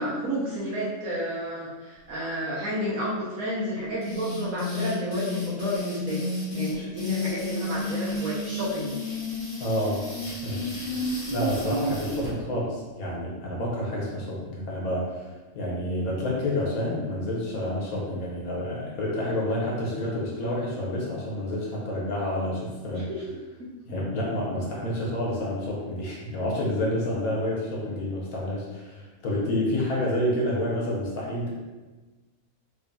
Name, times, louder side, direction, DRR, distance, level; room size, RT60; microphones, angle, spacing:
voice 1, 0.0-9.0 22.9-23.2, equal, 80° right, -8 dB, 1.2 m, -31 dB
sound 1, 4.0-12.3, left 2 dB, 50° left, 1.4 m, -31 dB
voice 2, 9.6-10.0 10.4-10.7 11.3-23.1 23.9-31.5, left 1 dB, 90° left, -4 dB, 1.5 m, -29 dB
3.7 x 3.6 x 2.6 m, 1.2 s
omnidirectional pair, 1.5 m